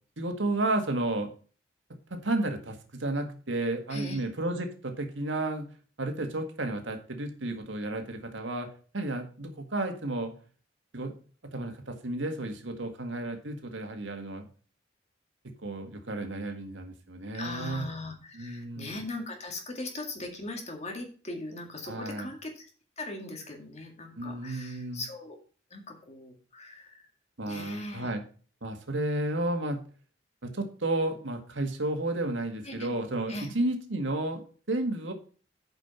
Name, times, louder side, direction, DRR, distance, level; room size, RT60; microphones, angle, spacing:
voice 1, 0.2-1.3 2.1-5.7 6.0-8.7 8.9-10.3 10.9-11.1 11.5-14.5 15.6-17.9 18.3-18.9 21.9-22.3 24.2-25.0 27.4-28.2 28.6-29.8 30.4-35.1, right 2 dB, 85° right, 5 dB, 1.9 m, -32 dB
voice 2, 3.9-4.2 17.3-22.7 23.0-25.4 25.7-27.1 27.5-28.1 28.9-29.2 32.6-33.0 33.3-33.5, left 2 dB, 35° left, 3 dB, 2.1 m, -40 dB
9.0 x 5.4 x 5.6 m, 0.39 s
head